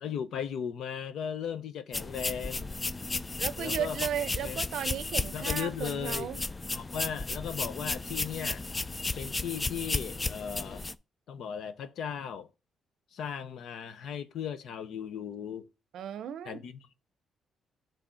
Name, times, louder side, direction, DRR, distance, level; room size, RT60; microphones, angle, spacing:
voice 1, 0.0-2.7 3.6-4.0 4.4-4.6 5.3-6.3 6.7-8.6 9.2-10.9 11.3-12.5 13.1-15.7 16.5-16.9, left 8 dB, 70° left, 0.7 m, -37 dB
sound 1, 1.9-10.9, left 3 dB, 25° left, 0.3 m, -34 dB
voice 2, 3.4-6.4 15.9-16.6, right 10 dB, 75° right, 0.5 m, -35 dB
6.1 x 3.4 x 5.5 m
cardioid pair, 90°, 0 cm